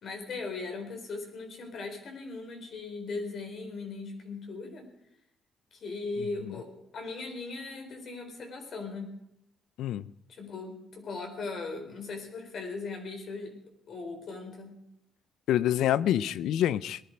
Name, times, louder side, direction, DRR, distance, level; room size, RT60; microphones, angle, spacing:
voice 1, 0.0-4.9 5.7-6.7 6.9-9.1 10.3-13.5 13.9-14.7, left 3 dB, 60° left, 3 dB, 4.0 m, -38 dB
voice 2, 6.2-6.5 9.8-10.1 15.5-17.0, left 11 dB, 85° left, 18 dB, 0.5 m, -27 dB
19.0 x 11.5 x 5.1 m, 0.79 s
cardioid pair, 90°, 0 cm